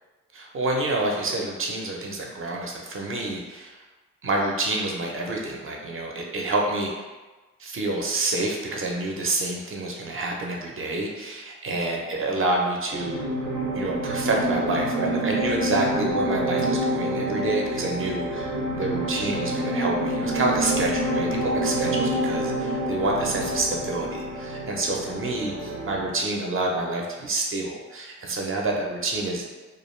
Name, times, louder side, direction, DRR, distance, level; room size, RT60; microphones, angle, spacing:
voice 1, 0.3-3.8 4.2-7.1 7.6-13.2 13.7-29.5, right 2 dB, 40° right, -1 dB, 0.7 m, -28 dB
sound 1, 12.9-26.2, right 1 dB, 85° right, 0.6 m, -27 dB
2.5 x 2.3 x 3.1 m, 1.2 s
cardioid pair, 55°, 32 cm